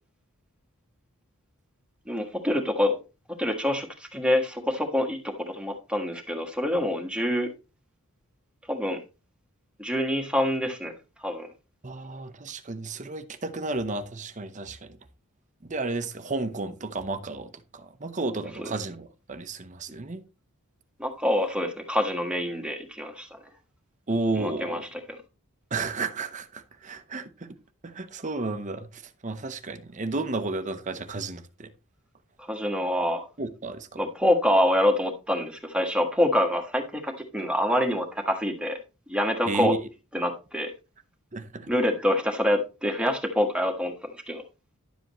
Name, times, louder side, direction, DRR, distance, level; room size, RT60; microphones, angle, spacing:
voice 1, 2.1-3.0 3.4-5.2 5.5-7.5 8.7-9.0 9.8-10.9 11.2-11.5 18.6-18.7 21.0-23.4 24.4-24.8 32.4-33.2 34.0-38.8 39.1-39.7 40.1-40.7 41.7-44.4, left 1 dB, 5° right, 1.4 m, -26 dB
voice 2, 11.8-15.0 15.7-20.2 24.1-24.8 25.7-27.5 27.8-31.7 33.4-34.1 39.5-39.8 41.3-41.7, right 3 dB, 35° right, 0.8 m, -32 dB
11.5 x 7.6 x 3.0 m
head